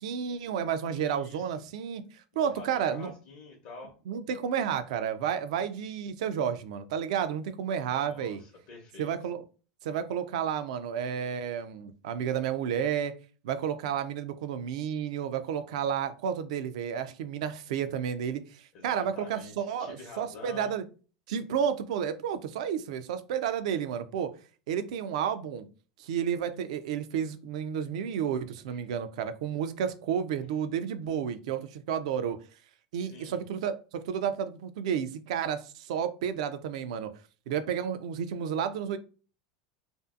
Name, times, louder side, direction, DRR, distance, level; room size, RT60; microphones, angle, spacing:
voice 1, 0.0-3.1 4.1-8.4 9.0-9.4 9.8-13.1 13.4-20.8 21.3-24.3 24.7-25.7 26.0-32.4 32.9-37.1 37.5-39.0, right 8 dB, 75° right, 0.3 m, -31 dB
voice 2, 0.9-1.6 2.3-3.9 7.9-9.1 18.7-20.7 28.7-28.8 33.0-33.4, left 3 dB, 65° left, 0.7 m, -47 dB
2.6 x 2.4 x 2.3 m
hypercardioid pair, 105°, 4 cm